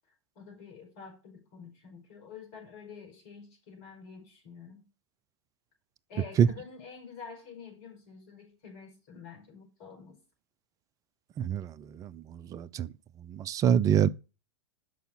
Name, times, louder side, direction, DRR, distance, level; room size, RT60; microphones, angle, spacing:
voice 1, 0.4-4.9 6.1-10.2, left 6 dB, 45° left, 5.4 m, -48 dB
voice 2, 11.4-12.9 13.2-14.1, right 8 dB, 25° right, 0.4 m, -26 dB
6.8 x 6.3 x 7.5 m
figure-of-eight pair, 100°, 15 cm